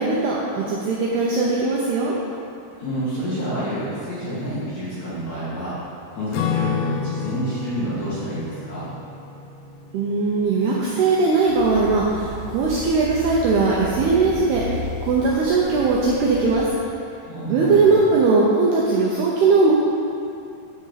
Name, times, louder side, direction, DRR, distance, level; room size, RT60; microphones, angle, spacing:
voice 1, 0.0-2.2 9.9-16.7 17.4-19.7, right 3 dB, 75° right, -4 dB, 2.4 m, -19 dB
voice 2, 2.8-5.8 6.1-8.9 17.2-18.0, equal, 50° left, -10 dB, 2.6 m, -28 dB
Acoustic guitar / Strum, 6.3-11.1, left 6 dB, 85° left, 2.7 m, -30 dB
sound 1, 11.5-16.7, left 1 dB, 25° right, 1.7 m, -34 dB
9.4 x 6.4 x 5.7 m, 2.6 s
omnidirectional pair, 5.6 m